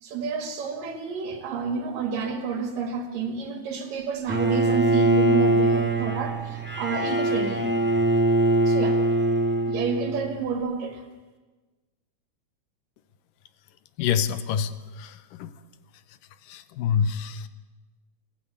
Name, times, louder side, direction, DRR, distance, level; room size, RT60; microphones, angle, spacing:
voice 1, 0.0-7.7 8.7-9.0 9.7-11.0, right 5 dB, 75° right, 5 dB, 3.4 m, -30 dB
Bowed string instrument, 4.3-10.4, right 2 dB, 10° right, 0.5 m, -22 dB
voice 2, 14.0-15.5 16.1-17.5, left 7 dB, 85° left, 13 dB, 2.6 m, -27 dB
23.5 x 16.0 x 8.3 m, 1.3 s
omnidirectional pair, 3.9 m